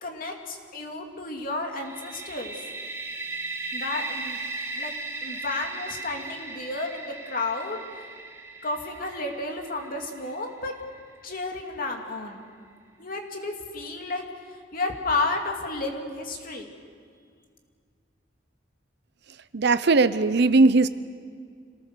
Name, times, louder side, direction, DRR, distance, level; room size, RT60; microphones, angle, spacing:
voice 1, 0.0-2.6 3.7-4.4 4.8-4.9 5.2-7.8 8.6-10.7 11.2-12.4 13.0-14.2 14.5-16.7, left 2 dB, 50° left, 2 dB, 2.7 m, -32 dB
sound 1, 1.8-11.5, right 3 dB, 15° right, 2.4 m, -37 dB
voice 2, 19.5-20.9, right 3 dB, 60° right, 13 dB, 0.7 m, -19 dB
26.5 x 18.5 x 6.8 m, 2.1 s
head